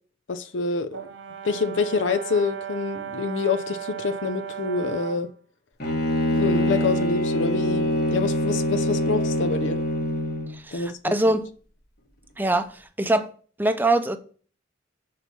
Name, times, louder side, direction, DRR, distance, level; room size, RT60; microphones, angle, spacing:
voice 1, 0.3-1.0 1.4-5.3 6.3-9.8 10.7-11.0 11.3-11.4, left 4 dB, 70° left, 0.6 m, -26 dB
Brass instrument, 0.9-5.3, right 9 dB, 75° right, 0.9 m, -35 dB
Bowed string instrument, 5.8-10.6, left 1 dB, 55° left, 1.5 m, -24 dB
voice 2, 10.5-11.5 12.4-13.3 13.6-14.2, right 2 dB, 10° right, 0.6 m, -23 dB
6.4 x 4.2 x 5.6 m
head